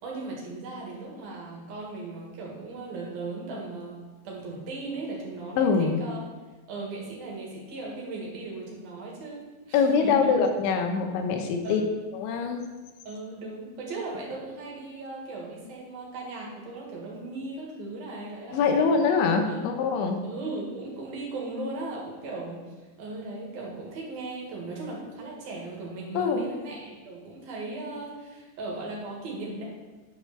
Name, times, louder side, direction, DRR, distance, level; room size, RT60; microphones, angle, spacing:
voice 1, 0.0-6.2 6.7-10.3 11.6-12.0 13.1-19.1 19.4-19.6 20.2-22.6 23.0-29.6, right 2 dB, 60° right, -3 dB, 3.4 m, -37 dB
voice 2, 5.6-6.0 9.7-11.8 12.1-12.6 18.5-20.2 26.1-26.5, left 5 dB, 85° left, 4 dB, 3.3 m, -24 dB
9.8 x 4.9 x 6.9 m, 1.2 s
omnidirectional pair, 5.2 m